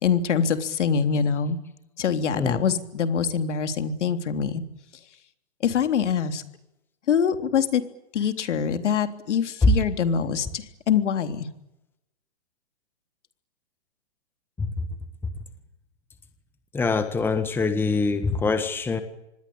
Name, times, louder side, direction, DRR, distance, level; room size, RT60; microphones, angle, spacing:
voice 1, 0.0-1.6 2.0-4.6 5.6-6.4 7.1-7.8 8.1-11.5, left 7 dB, 70° left, 8 dB, 3.6 m, -24 dB
voice 2, 16.7-19.0, left 4 dB, 5° left, 9 dB, 1.5 m, -23 dB
26.5 x 20.5 x 8.9 m, 0.88 s
hypercardioid pair, 155°, 36 cm